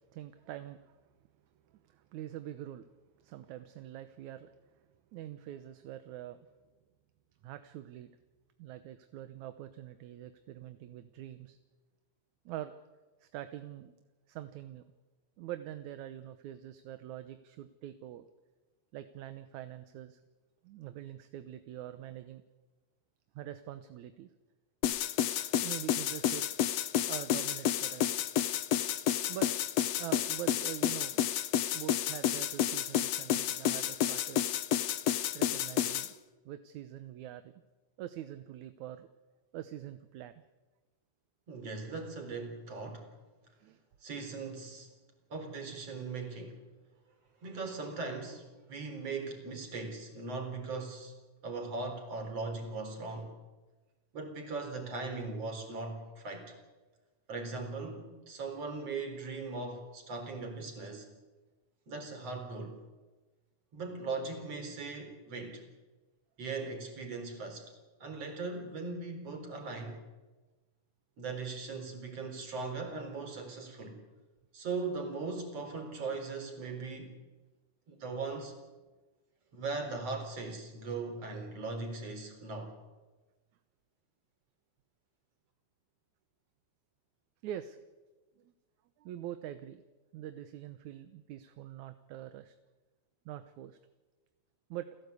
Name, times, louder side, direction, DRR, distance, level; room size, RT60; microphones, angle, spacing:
voice 1, 0.1-1.0 1.7-2.9 3.2-6.4 7.4-8.1 8.6-11.6 12.5-12.7 13.2-14.0 14.3-14.8 15.4-18.3 18.9-20.2 20.6-22.4 23.4-24.3 25.4-26.5 27.1-28.2 29.3-29.5 30.0-31.2 31.7-34.5 35.3-36.1 36.5-37.5 38.0-39.1 39.5-40.3 43.6-43.8 87.4-87.8 88.4-88.5 89.0-89.8 90.1-92.5 93.3-93.8 94.7-94.9, right 12 dB, 75° right, 10 dB, 2.3 m, -44 dB
sound 1, 24.8-36.1, left 10 dB, 65° left, 1.8 m, -30 dB
voice 2, 41.5-43.1 44.0-44.9 45.3-46.6 47.4-51.1 51.4-53.3 54.1-56.5 57.3-61.1 61.9-62.8 63.7-65.6 66.4-67.7 68.0-70.0 71.2-74.0 74.5-77.2 77.9-78.6 79.5-82.7, right 3 dB, 50° right, 5 dB, 5.1 m, -39 dB
30.0 x 16.5 x 8.4 m, 1.2 s
omnidirectional pair, 3.5 m